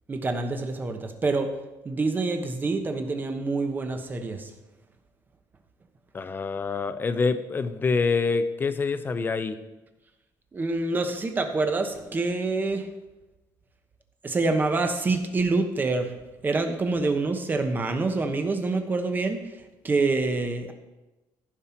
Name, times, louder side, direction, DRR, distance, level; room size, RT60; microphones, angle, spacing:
voice 1, 0.1-1.5 1.8-4.5 10.5-12.9 14.2-16.1 16.4-19.5 19.8-20.7, right 3 dB, 25° right, 6 dB, 1.1 m, -26 dB
voice 2, 6.1-9.6, left 4 dB, 25° left, 11 dB, 0.7 m, -26 dB
14.5 x 5.6 x 4.5 m, 1.0 s
cardioid pair, 135°, 8 cm